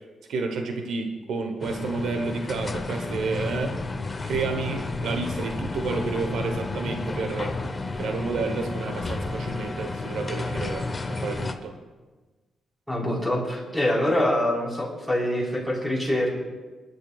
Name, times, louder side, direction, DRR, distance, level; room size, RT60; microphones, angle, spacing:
voice 1, 0.3-3.8 4.3-7.6 8.0-11.7, right 4 dB, 80° right, 5 dB, 1.0 m, -30 dB
sound 1, 1.6-11.5, left 3 dB, 25° left, 0.9 m, -31 dB
voice 2, 12.9-16.3, left 1 dB, 5° right, -4 dB, 4.3 m, -25 dB
23.5 x 11.0 x 2.4 m, 1.3 s
cardioid pair, 100°, 0 cm